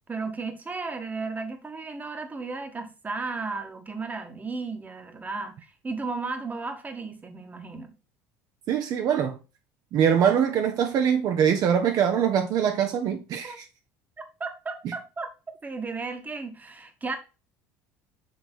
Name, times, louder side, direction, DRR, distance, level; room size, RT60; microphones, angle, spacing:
voice 1, 0.1-7.9 13.4-13.6 14.4-15.3 15.6-17.2, right 4 dB, 20° right, 1.2 m, -34 dB
voice 2, 8.7-9.4 9.9-13.6, right 8 dB, 55° right, 0.7 m, -23 dB
6.6 x 3.4 x 4.3 m
supercardioid pair, 85°, 8 cm